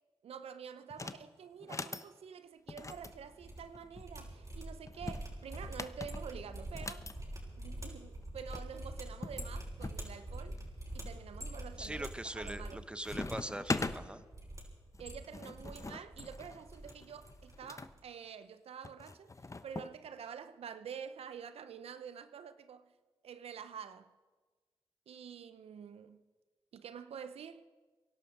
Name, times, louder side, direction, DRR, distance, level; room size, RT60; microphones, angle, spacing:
voice 1, 0.2-7.0 7.6-10.6 10.9-12.9 15.0-19.3 19.6-22.9 23.2-24.1 25.1-26.2 26.7-27.7, right 7 dB, 75° right, 0.6 m, -48 dB
sound 1, 0.9-1.2 1.6-2.1 2.7-4.1 4.9-7.1 8.2-8.3 8.5-8.6 9.2-10.0 10.6-11.1 11.6-12.0 12.3-12.7 13.0-14.0 14.9-17.9 18.8-19.9, left 3 dB, 30° left, 0.9 m, -42 dB
sound 2, 2.7-3.6 3.9-12.8 13.0-13.3 13.6-14.6 14.9-15.8 16.0-16.9 17.2-17.5 17.8-18.0, right 1 dB, 35° right, 6.3 m, -45 dB
voice 2, 11.8-14.2, right 1 dB, 10° right, 1.1 m, -42 dB
23.5 x 11.5 x 5.0 m
supercardioid pair, 45°, 10 cm